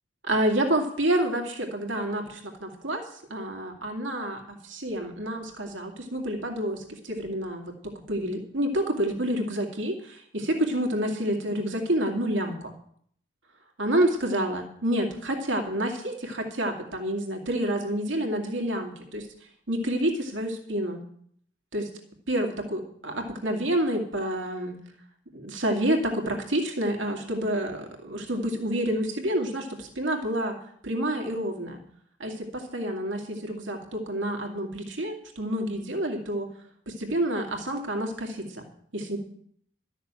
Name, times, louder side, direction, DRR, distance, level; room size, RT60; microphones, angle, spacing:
voice 1, 0.2-3.0 3.3-12.7 13.8-19.3 19.7-21.0 21.7-21.9 22.3-24.8 25.3-30.6 30.8-31.8 32.2-36.5 36.9-38.7 38.9-39.2, right 1 dB, 70° right, 3 dB, 2.3 m, -28 dB
13.0 x 6.6 x 8.8 m, 0.64 s
head